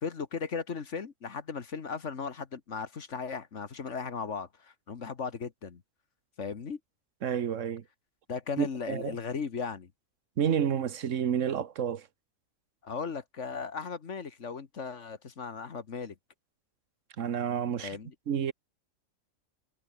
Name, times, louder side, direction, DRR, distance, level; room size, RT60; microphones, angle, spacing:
voice 1, 0.0-5.8 6.4-6.8 8.3-9.9 12.8-16.2 17.8-18.2, left 5 dB, 60° left, 1.8 m, -37 dB
voice 2, 7.2-7.8 8.6-9.2 10.4-12.0 17.2-18.0 18.3-18.5, right 8 dB, 65° right, 1.5 m, -30 dB
omnidirectional pair, 1.4 m